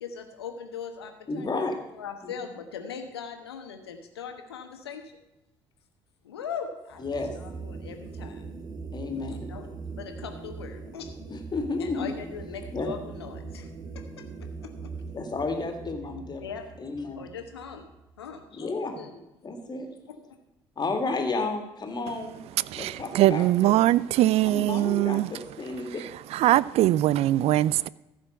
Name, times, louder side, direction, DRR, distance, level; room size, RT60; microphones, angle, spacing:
voice 1, 0.0-1.6 1.9-5.2 6.2-8.4 9.2-11.1 11.8-13.7 13.9-14.9 16.4-16.7 17.2-17.9 18.2-19.1 20.2-20.3, left 7 dB, 85° left, 6 dB, 1.1 m, -40 dB
voice 2, 1.3-1.8 2.2-2.4 7.0-7.3 8.9-9.5 11.3-12.1 12.7-12.9 15.1-16.4 16.8-17.2 18.5-19.0 19.4-19.9 20.8-22.4 22.8-23.7 24.4-26.0, left 3 dB, 35° left, 4 dB, 2.2 m, -32 dB
sound 1, 6.9-18.3, right 4 dB, 30° right, 1.3 m, -41 dB
voice 3, 22.7-25.3 26.3-27.9, right 14 dB, 50° right, 21 dB, 0.4 m, -22 dB
14.5 x 5.1 x 6.6 m, 0.94 s
figure-of-eight pair, 50°, 13 cm